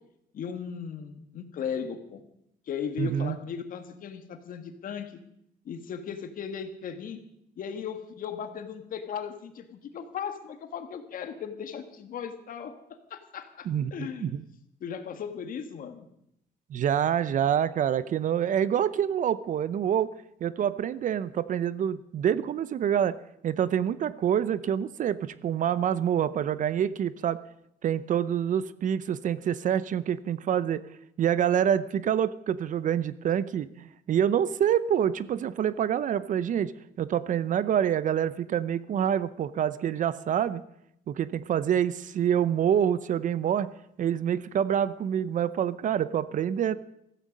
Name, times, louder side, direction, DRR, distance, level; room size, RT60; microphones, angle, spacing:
voice 1, 0.3-2.2 2.7-5.2 5.6-7.2 7.6-14.3 14.8-16.1, left 7 dB, 55° left, 8 dB, 1.8 m, -37 dB
voice 2, 3.0-3.4 13.7-14.4 16.7-20.1 20.4-23.2 23.4-27.4 27.8-30.8 31.2-36.7 37.0-40.6 41.1-43.7 44.0-46.8, right 9 dB, 50° right, 16 dB, 0.7 m, -26 dB
15.5 x 14.5 x 5.3 m, 0.77 s
cardioid pair, 110°, 17 cm